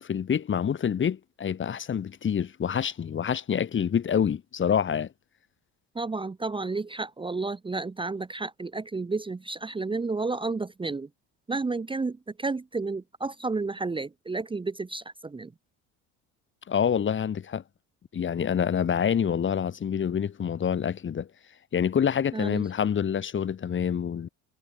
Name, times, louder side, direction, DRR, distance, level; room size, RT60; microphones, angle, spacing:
voice 1, 0.0-5.1 16.7-17.6 18.1-21.3 21.7-24.3, left 8 dB, 35° left, 1.4 m, -27 dB
voice 2, 5.9-11.1 11.5-15.5 22.3-22.7, right 3 dB, 15° right, 0.9 m, -31 dB
supercardioid pair, 95°, 35 cm